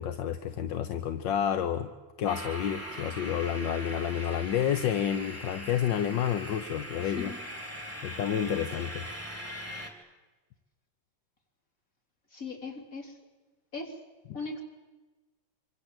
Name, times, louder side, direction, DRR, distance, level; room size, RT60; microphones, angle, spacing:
voice 1, 0.0-1.9 2.2-7.3 8.0-9.0, left 9 dB, 80° left, 10 dB, 1.7 m, -30 dB
sound 1, 2.3-9.9, equal, 5° left, 3.4 m, -41 dB
voice 2, 7.0-7.4 12.3-13.2 13.7-14.0 14.3-14.6, left 3 dB, 45° left, 3 dB, 4.3 m, -39 dB
25.5 x 25.5 x 8.0 m, 1.2 s
omnidirectional pair, 2.0 m